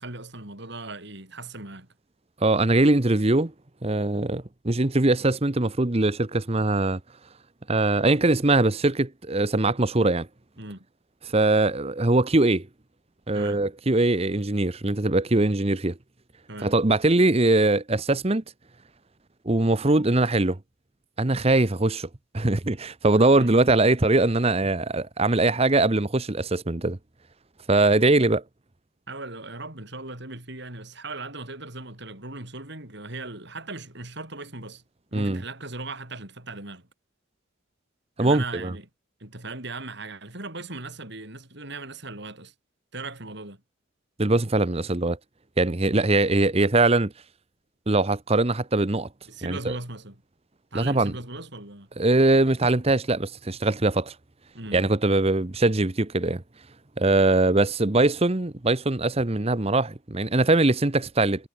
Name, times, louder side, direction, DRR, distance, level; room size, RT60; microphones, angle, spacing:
voice 1, 0.0-1.9 10.6-10.8 13.3-13.6 16.5-16.7 23.4-23.5 29.1-34.8 35.1-36.9 38.2-38.9 39.2-42.5 42.9-43.6 49.3-50.1 50.7-51.9 54.5-54.8, right 2 dB, 55° right, 5.8 m, -38 dB
voice 2, 2.4-3.5 3.8-7.0 7.7-10.3 11.2-12.7 13.3-16.0 16.6-18.4 19.4-20.6 21.2-22.1 22.3-27.0 27.7-28.4 35.1-35.4 38.2-38.7 44.2-45.2 45.6-47.1 47.9-49.1 49.4-49.8 50.7-51.1 52.0-54.1 54.7-56.4 57.0-61.5, right 2 dB, 30° right, 1.0 m, -22 dB
head